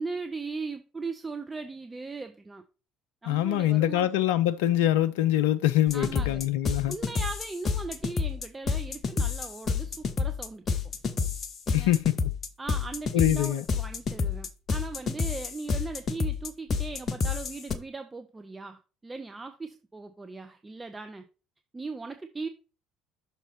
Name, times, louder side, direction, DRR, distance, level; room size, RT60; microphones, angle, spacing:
voice 1, 0.0-2.6 3.2-4.1 5.9-6.5 6.9-10.8 11.7-12.0 12.6-21.2 21.7-22.5, right 4 dB, 20° right, 0.6 m, -38 dB
voice 2, 3.2-7.0 11.7-12.2 13.1-13.6, left 13 dB, 70° left, 0.3 m, -24 dB
sound 1, 5.9-17.7, left 5 dB, 35° left, 0.8 m, -29 dB
6.1 x 4.0 x 5.5 m
figure-of-eight pair, 55°, 0 cm